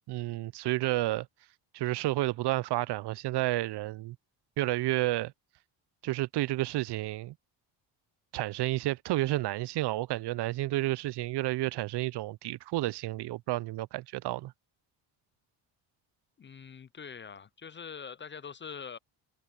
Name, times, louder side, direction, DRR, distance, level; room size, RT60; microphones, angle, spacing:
voice 1, 0.1-1.3 1.7-4.2 4.6-5.3 6.0-7.3 8.3-14.5, right 17 dB, 60° right, 0.6 m, -31 dB
voice 2, 16.4-19.0, left 6 dB, 25° left, 0.4 m, -44 dB
cardioid pair, 90°, 45 cm